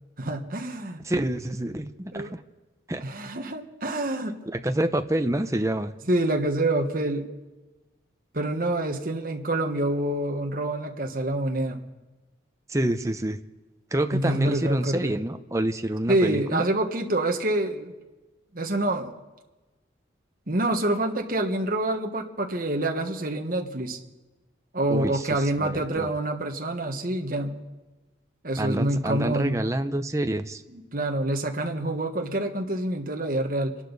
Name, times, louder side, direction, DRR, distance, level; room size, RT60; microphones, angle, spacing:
voice 1, 0.2-1.0 2.1-2.3 3.0-4.3 6.1-7.3 8.3-11.8 14.1-15.1 16.1-17.9 18.5-19.1 20.5-24.0 24.7-27.6 28.4-29.7 30.7-33.8, right 1 dB, 45° right, 3 dB, 1.4 m, -27 dB
voice 2, 1.0-2.4 2.9-3.0 4.5-5.9 12.7-13.4 13.9-16.7 24.9-26.1 28.6-30.6, right 1 dB, 15° right, 8 dB, 0.7 m, -27 dB
27.0 x 11.5 x 4.1 m, 1.2 s
head